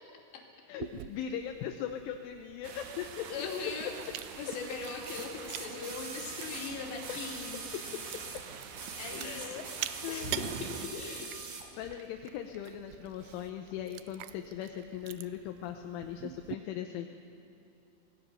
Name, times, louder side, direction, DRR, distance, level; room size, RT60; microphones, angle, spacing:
voice 1, 0.7-3.5 6.3-6.5 7.1-7.4 9.2-9.6 10.0-10.5 11.2-11.3 11.8-17.1, left 10 dB, 85° left, 5 dB, 3.4 m, -39 dB
Chewing mastication, 0.8-16.5, right 14 dB, 90° right, 2.4 m, -46 dB
sound 1, 2.6-10.9, right 6 dB, 70° right, 1.9 m, -45 dB
voice 2, 3.3-3.9 4.4-7.6 9.0-9.7 10.1-11.3, left 5 dB, 65° left, 1 dB, 4.8 m, -40 dB
sound 2, 3.5-3.6 5.1-8.4 8.7-11.7 12.6-12.7, right 4 dB, 50° right, 1.3 m, -44 dB
26.0 x 19.0 x 6.9 m, 3.0 s
omnidirectional pair, 5.5 m